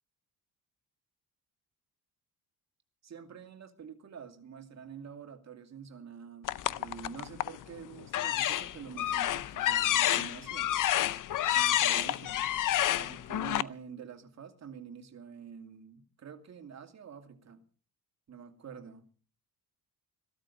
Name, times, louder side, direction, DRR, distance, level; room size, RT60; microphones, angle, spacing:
voice 1, 3.0-10.7 11.5-12.4 13.0-17.6 18.3-19.0, right 7 dB, 45° right, 5 dB, 2.5 m, -47 dB
sound 1, 6.5-7.6 8.1-13.6, left 12 dB, 55° left, 0.7 m, -29 dB
16.5 x 13.0 x 5.4 m, 0.40 s
cardioid pair, 125°, 38 cm